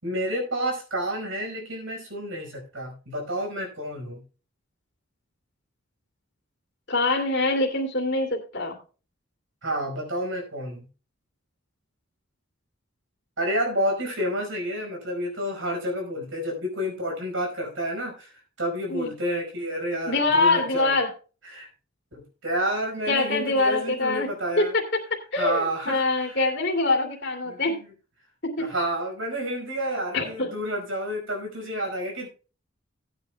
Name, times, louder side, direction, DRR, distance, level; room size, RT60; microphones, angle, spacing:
voice 1, 0.0-4.2 9.6-10.9 13.4-20.9 21.4-21.7 22.1-24.7 25.4-26.4 27.5-27.9 28.6-32.3, equal, 70° right, 2 dB, 5.0 m, -30 dB
voice 2, 6.9-8.8 18.9-19.1 20.1-21.1 23.1-24.3 24.6-24.7 25.3-27.8 28.4-28.7 30.1-30.5, left 2 dB, 55° left, 0 dB, 2.6 m, -24 dB
18.0 x 9.1 x 2.2 m, 0.35 s
head